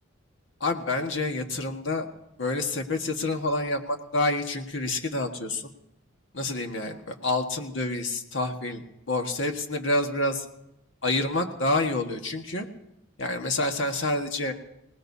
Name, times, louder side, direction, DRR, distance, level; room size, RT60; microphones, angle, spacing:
voice 1, 0.6-2.1 2.4-5.7 6.3-10.4 11.0-12.7 13.2-14.5, left 2 dB, 65° left, 4 dB, 1.6 m, -28 dB
25.5 x 18.5 x 2.8 m, 0.84 s
head